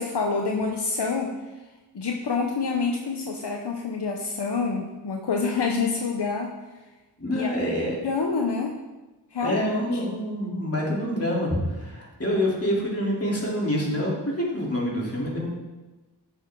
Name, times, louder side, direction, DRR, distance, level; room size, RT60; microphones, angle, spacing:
voice 1, 0.0-1.3 1.9-6.5 7.3-7.5 8.0-8.8 9.3-9.6, left 4 dB, 75° left, 1 dB, 0.9 m, -27 dB
voice 2, 7.2-7.9 9.4-15.5, equal, 35° left, -4 dB, 3.4 m, -26 dB
12.0 x 7.0 x 3.8 m, 1.1 s
wide cardioid pair, 55°, 41 cm